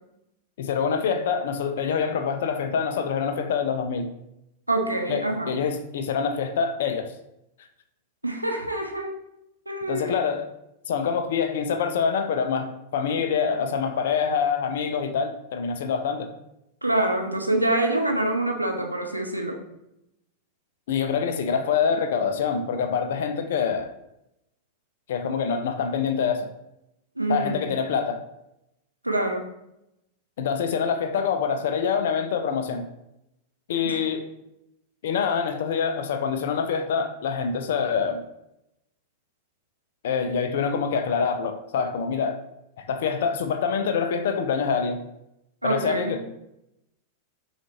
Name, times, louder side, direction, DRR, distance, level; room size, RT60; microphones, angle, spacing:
voice 1, 0.6-4.1 5.1-7.1 9.9-10.5 10.9-16.3 20.9-23.9 25.1-26.5 27.3-28.2 30.4-32.9 33.7-34.2 35.0-38.2 40.0-42.4 42.8-45.0 45.6-46.2, left 6 dB, 60° left, 8 dB, 0.4 m, -25 dB
voice 2, 4.7-5.5 8.2-9.1 9.7-10.1 16.8-19.6 27.2-27.7 29.0-29.4 33.8-34.0 45.6-46.2, right 1 dB, 85° right, 2 dB, 0.6 m, -26 dB
5.9 x 2.4 x 3.0 m, 0.85 s
figure-of-eight pair, 90°, 0 cm